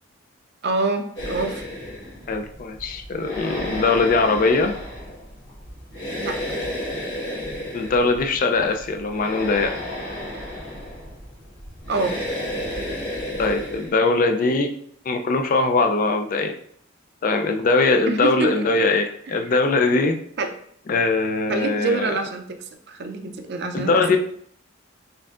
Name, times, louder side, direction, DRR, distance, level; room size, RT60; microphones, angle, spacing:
voice 1, 0.6-1.6 6.2-6.3 11.9-12.2 18.1-18.6 19.3-19.4 20.4-20.5 21.5-24.2, right 3 dB, 50° right, 6 dB, 0.5 m, -26 dB
sound 1, 1.2-13.9, left 1 dB, 60° left, 1.4 m, -32 dB
voice 2, 2.3-4.7 7.7-9.8 13.4-14.7 15.1-16.5 17.2-20.2 20.9-22.1 23.7-24.2, left 3 dB, 40° left, 5 dB, 0.3 m, -21 dB
4.4 x 3.6 x 2.4 m, 0.63 s
head